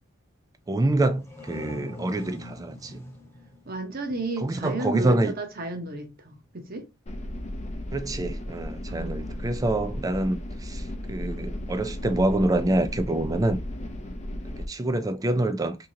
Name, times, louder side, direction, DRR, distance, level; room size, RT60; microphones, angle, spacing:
voice 1, 0.7-3.0 4.4-5.3 7.9-10.8 11.1-13.6 14.7-15.8, right 2 dB, 15° right, 0.3 m, -26 dB
sound 1, 1.0-4.6, left 1 dB, 10° left, 0.9 m, -43 dB
voice 2, 3.7-6.9 8.9-9.6, right 2 dB, 45° right, 0.8 m, -33 dB
sound 2, 7.1-14.7, left 1 dB, 35° left, 0.6 m, -35 dB
3.7 x 2.9 x 2.8 m
head